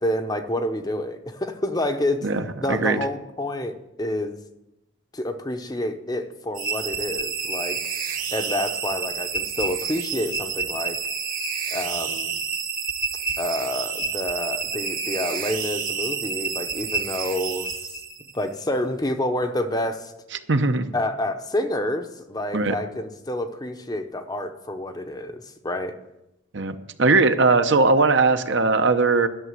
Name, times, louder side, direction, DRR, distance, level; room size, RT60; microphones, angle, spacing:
voice 1, 0.0-2.3 2.6-4.4 5.1-7.8 8.3-11.0 11.7-12.4 13.4-17.9 18.3-20.1 20.9-25.9, left 1 dB, 20° left, 7 dB, 0.7 m, -28 dB
voice 2, 2.2-3.0 20.5-20.9 22.5-22.7 26.5-29.3, right 3 dB, 60° right, 8 dB, 0.8 m, -20 dB
sound 1, 6.5-18.4, right 5 dB, 40° right, 1.3 m, -29 dB
11.5 x 6.9 x 9.1 m, 0.91 s
head